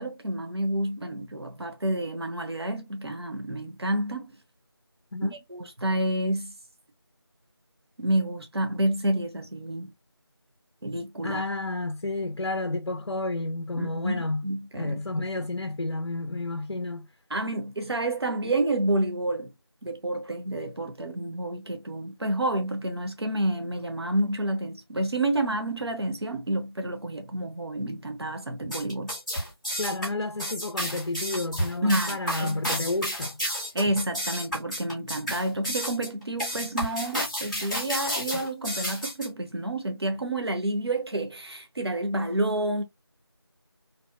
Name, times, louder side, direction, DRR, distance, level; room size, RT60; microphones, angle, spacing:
voice 1, 0.0-4.3 5.2-6.5 8.0-9.9 10.8-11.4 13.7-15.0 17.3-19.5 19.8-29.1 31.8-32.6 33.7-42.8, right 1 dB, 70° right, 0.7 m, -29 dB
voice 2, 11.2-14.5 14.7-17.1 29.8-33.4, left 2 dB, 85° left, 0.5 m, -31 dB
sound 1, 28.6-39.3, equal, ahead, 0.5 m, -31 dB
2.7 x 2.0 x 2.2 m
figure-of-eight pair, 175°, 14 cm